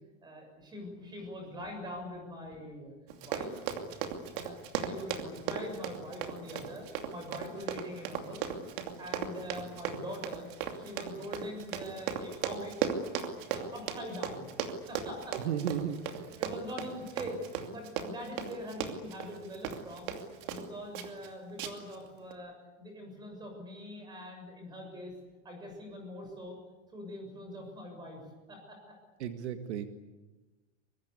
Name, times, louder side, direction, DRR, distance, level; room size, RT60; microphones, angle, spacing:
voice 1, 0.2-2.9 3.2-3.6 4.3-8.5 9.0-10.5 10.7-12.8 13.4-14.5 14.9-15.4 16.4-17.4 17.7-20.1 20.4-25.1 25.4-26.5 26.9-28.2 28.5-28.8, equal, 10° right, 3 dB, 7.0 m, -43 dB
Run, 3.1-20.7 20.9-21.3 21.6-22.0 22.3-22.4, right 8 dB, 45° right, 2.7 m, -37 dB
voice 2, 15.3-16.4 29.2-29.9, right 8 dB, 65° right, 6 dB, 2.0 m, -35 dB
24.0 x 23.5 x 8.4 m, 1.2 s
supercardioid pair, 180°, 36 cm